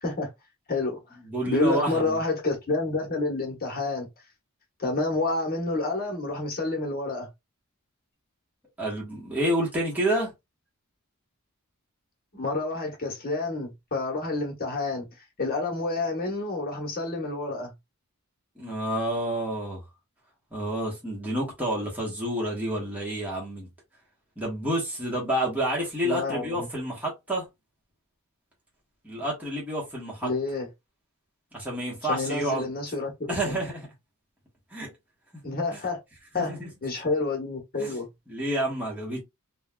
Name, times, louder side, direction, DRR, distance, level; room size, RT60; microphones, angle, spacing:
voice 1, 0.7-1.0 1.5-4.1 4.8-7.3 12.3-15.1 15.4-17.7 26.0-26.7 30.2-30.7 32.1-33.6 35.4-36.0 36.3-38.1, left 3 dB, 45° left, 1.1 m, -29 dB
voice 2, 1.3-2.2 8.8-10.3 18.6-19.8 20.5-23.7 24.4-27.5 29.0-30.3 31.5-32.7 33.3-33.9 34.7-34.9 35.7-35.8 36.3-36.7 37.8-38.0 38.3-39.2, right 1 dB, 5° right, 1.0 m, -29 dB
3.1 x 2.3 x 2.2 m
head